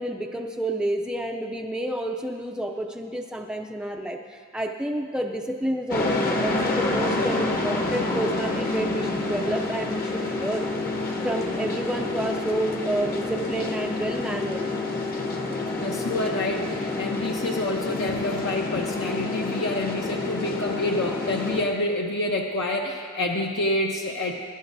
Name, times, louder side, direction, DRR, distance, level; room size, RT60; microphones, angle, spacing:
voice 1, 0.0-10.7 11.2-14.7, right 1 dB, 5° right, 1 dB, 0.4 m, -29 dB
sound 1, 5.9-21.6, left 2 dB, 45° left, 1.2 m, -28 dB
voice 2, 15.8-24.3, left 1 dB, 60° left, -1 dB, 0.8 m, -28 dB
23.0 x 12.5 x 2.7 m, 2.1 s
head